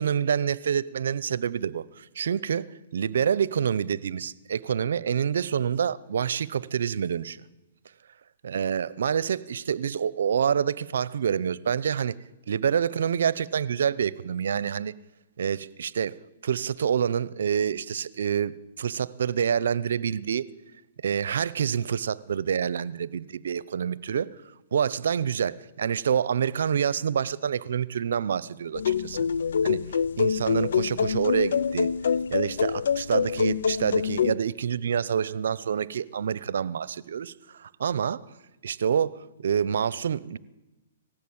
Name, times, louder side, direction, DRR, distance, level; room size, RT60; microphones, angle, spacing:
voice 1, 0.0-7.4 8.4-12.2 12.5-14.9 15.4-16.2 16.4-20.5 21.0-24.3 24.7-29.2 29.6-29.8 30.2-31.9 32.3-37.3 37.6-38.2 38.6-40.4, right 8 dB, 75° right, 0.8 m, -27 dB
sound 1, 28.7-34.4, left 7 dB, 75° left, 0.6 m, -25 dB
19.0 x 15.5 x 8.8 m
hypercardioid pair, 145°, 0 cm